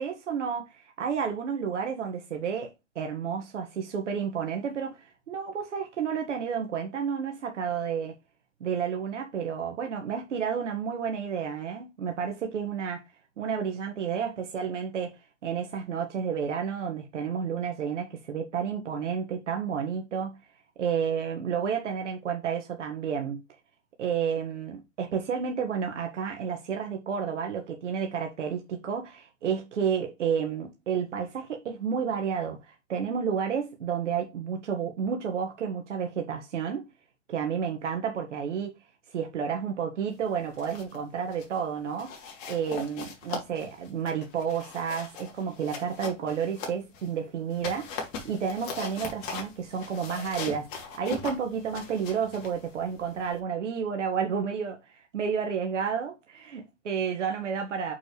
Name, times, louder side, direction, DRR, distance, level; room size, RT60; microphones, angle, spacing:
voice 1, 0.0-8.1 8.6-13.0 13.4-20.4 20.8-23.4 24.0-36.8 37.3-38.7 39.1-42.1 42.5-47.9 48.2-57.9, right 7 dB, 70° right, 1.7 m, -31 dB
sound 1, 40.4-41.0 41.3-41.6 42.0-47.1 47.5-53.4, left 5 dB, 40° left, 3.0 m, -40 dB
7.0 x 6.0 x 3.2 m
hypercardioid pair, 130°, 38 cm